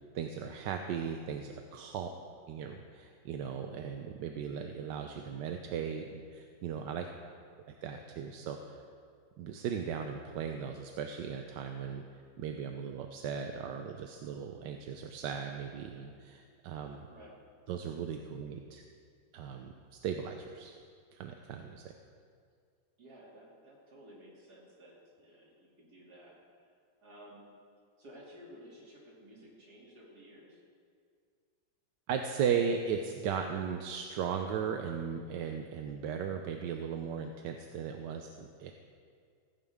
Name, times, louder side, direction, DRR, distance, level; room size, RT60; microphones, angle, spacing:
voice 1, 0.1-2.1 2.5-7.1 7.8-8.8 9.4-17.1 17.7-18.8 19.3-20.7 21.1-21.8 32.1-38.7, right 7 dB, 70° right, 5 dB, 1.3 m, -37 dB
voice 2, 7.0-7.4 17.1-17.4 23.0-26.7 27.0-27.5 28.0-30.6, equal, 55° right, -4 dB, 3.3 m, -55 dB
15.0 x 15.0 x 3.6 m, 2.2 s
omnidirectional pair, 2.1 m